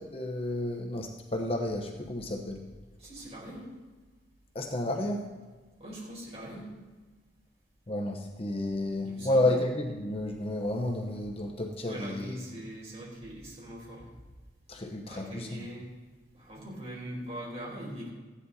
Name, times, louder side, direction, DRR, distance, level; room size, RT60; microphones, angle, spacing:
voice 1, 0.0-2.7 4.5-5.3 7.9-12.4 14.7-15.7, left 1 dB, 35° left, 3 dB, 0.9 m, -31 dB
voice 2, 3.0-3.7 5.8-6.7 9.0-9.5 11.9-14.1 15.1-15.9 16.3-18.1, right 1 dB, 35° right, -5 dB, 4.6 m, -41 dB
14.5 x 10.0 x 4.2 m, 1.3 s
head